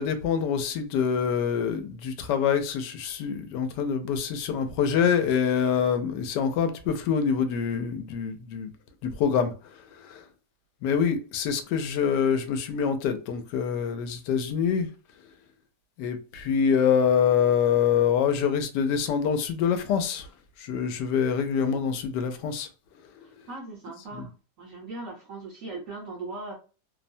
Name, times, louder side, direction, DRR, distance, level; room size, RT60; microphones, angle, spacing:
voice 1, 0.0-8.7 9.2-9.5 10.1-10.2 10.8-14.9 16.0-20.3 20.7-22.7 24.1-24.3, left 7 dB, 85° left, 1.2 m, -25 dB
voice 2, 23.2-24.3 24.6-26.5, right 3 dB, 65° right, 0.9 m, -39 dB
2.9 x 2.1 x 2.6 m
omnidirectional pair, 1.8 m